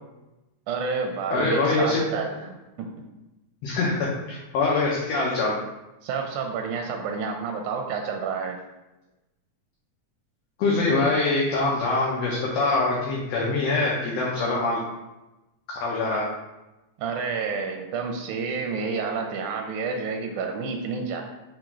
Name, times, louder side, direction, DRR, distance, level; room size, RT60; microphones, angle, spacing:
voice 1, 0.7-2.9 6.0-8.6 17.0-21.2, right 5 dB, 85° right, 3 dB, 2.0 m, -29 dB
voice 2, 1.3-2.0 3.6-5.5 10.6-14.8 15.8-16.3, left 3 dB, 75° left, -4 dB, 1.6 m, -24 dB
4.6 x 3.7 x 3.0 m, 1.0 s
omnidirectional pair, 3.4 m